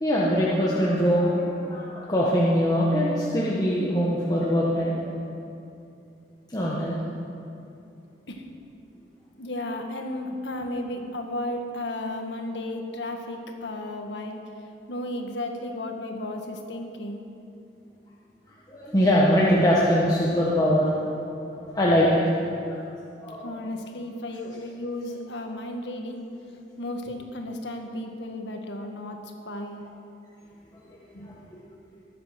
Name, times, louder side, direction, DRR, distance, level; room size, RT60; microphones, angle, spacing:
voice 1, 0.0-4.9 6.5-7.0 18.7-20.9 21.5-22.2 23.2-23.5 31.5-31.6, equal, 20° left, -6 dB, 1.4 m, -22 dB
voice 2, 9.4-14.4 14.9-17.2 23.4-26.2 26.8-29.8 31.1-31.3, left 1 dB, 80° left, 3 dB, 1.6 m, -34 dB
20.0 x 7.7 x 5.9 m, 2.7 s
head